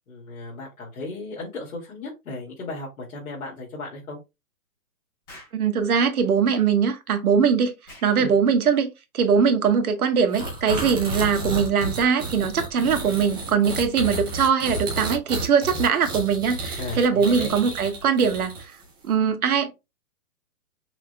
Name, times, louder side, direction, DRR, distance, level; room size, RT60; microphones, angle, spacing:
voice 1, 0.1-4.2 8.2-8.3 16.8-17.5, left 2 dB, 70° left, 2.5 m, -35 dB
Explosion, 5.3-5.6 7.8-8.2, left 1 dB, 15° left, 0.9 m, -46 dB
voice 2, 5.5-7.7 8.0-18.7 19.0-19.7, right 6 dB, 70° right, 1.3 m, -21 dB
sound 1, 10.3-18.8, right 2 dB, 15° right, 0.9 m, -31 dB
5.7 x 3.5 x 2.2 m
hypercardioid pair, 175°, 45 cm